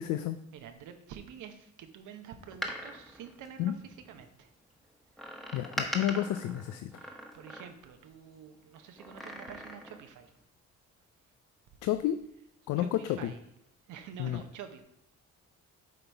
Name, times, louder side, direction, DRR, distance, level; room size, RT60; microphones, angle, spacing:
voice 1, 0.0-0.4 3.6-3.7 5.5-6.9 11.8-12.2 12.7-13.3 14.2-14.4, left 12 dB, 80° left, 10 dB, 0.5 m, -30 dB
voice 2, 0.5-4.5 5.2-5.4 6.9-10.3 12.8-13.4 13.9-14.8, right 8 dB, 85° right, 7 dB, 0.8 m, -48 dB
Door, 2.4-4.2 5.2-8.0 9.0-10.1 10.4-10.5, equal, ahead, 1.1 m, -41 dB
7.7 x 3.9 x 4.5 m, 0.76 s
cardioid pair, 90°, 30 cm